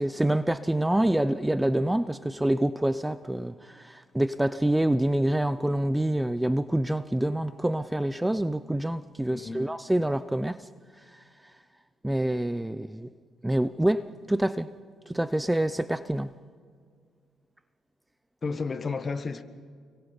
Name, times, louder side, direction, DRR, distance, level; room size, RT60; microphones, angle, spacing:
voice 1, 0.0-10.7 11.1-11.2 12.0-13.1 13.4-14.7 15.1-16.3, right 1 dB, 10° right, 0.6 m, -26 dB
voice 2, 9.3-9.7 18.4-19.4, left 4 dB, 35° left, 1.6 m, -32 dB
29.5 x 23.0 x 5.3 m
cardioid pair, 90°, 0 cm